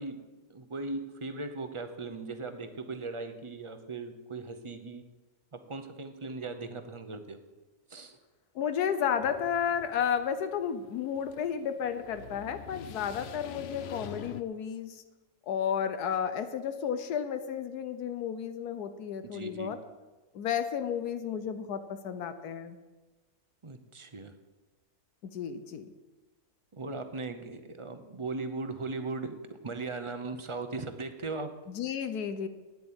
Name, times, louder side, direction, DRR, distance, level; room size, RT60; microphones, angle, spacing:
voice 1, 0.0-5.0 5.5-7.4 7.9-8.2 19.2-19.7 23.6-24.3 26.7-29.4 29.6-31.6, right 3 dB, 30° right, 9 dB, 0.6 m, -38 dB
voice 2, 8.5-15.0 15.5-19.8 20.3-22.8 25.3-25.9 31.7-32.5, left 8 dB, 85° left, 10 dB, 1.3 m, -32 dB
sound 1, 9.2-14.4, left 9 dB, 65° left, 0.6 m, -46 dB
9.5 x 8.0 x 8.7 m, 1.2 s
omnidirectional pair, 1.6 m